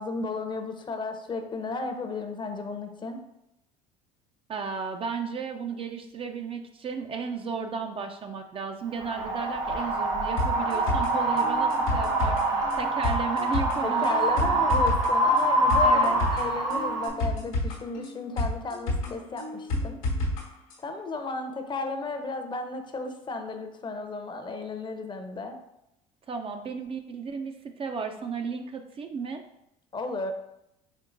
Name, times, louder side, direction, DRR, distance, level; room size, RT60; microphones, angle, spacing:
voice 1, 0.0-3.2 13.8-20.0 20.8-25.6 29.9-30.3, left 3 dB, 25° left, 6 dB, 0.6 m, -34 dB
voice 2, 4.5-14.8 15.8-16.2 26.3-29.4, right 5 dB, 30° right, 5 dB, 0.4 m, -34 dB
Wind, 9.0-17.1, right 1 dB, 80° right, 0.9 m, -25 dB
sound 1, 10.4-20.4 20.7-20.8, left 1 dB, 80° left, 1.0 m, -30 dB
4.4 x 3.6 x 2.5 m, 0.82 s
hypercardioid pair, 70°, 17 cm